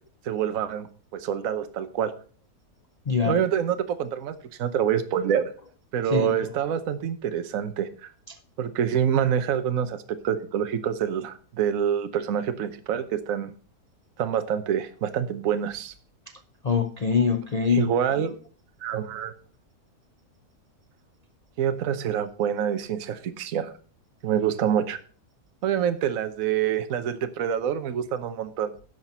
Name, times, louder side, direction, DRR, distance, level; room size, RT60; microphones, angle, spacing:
voice 1, 0.2-2.1 3.2-5.5 5.9-8.1 8.6-13.5 14.2-15.9 17.7-18.3 18.8-19.3 21.6-23.7 24.2-25.0 25.6-28.7, right 9 dB, 60° right, 1.2 m, -26 dB
voice 2, 3.1-3.4 6.1-6.4 8.3-8.4 16.6-17.9 18.2-18.3, left 6 dB, 70° left, 0.3 m, -24 dB
11.0 x 5.9 x 5.5 m
omnidirectional pair, 1.8 m